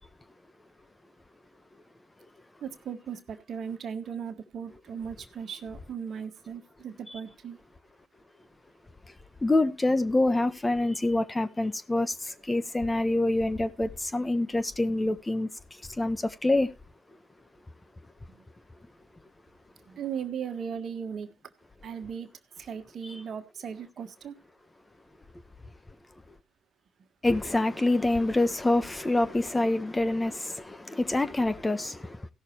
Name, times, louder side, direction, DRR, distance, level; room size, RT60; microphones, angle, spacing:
voice 1, 2.6-7.6 18.3-18.4 19.9-21.3 21.8-22.3 22.6-24.3, right 7 dB, 60° right, 1.5 m, -37 dB
voice 2, 9.4-16.7 23.0-23.1 27.2-32.3, left 2 dB, 20° left, 1.3 m, -26 dB
16.0 x 6.4 x 4.4 m
supercardioid pair, 55°, 0 cm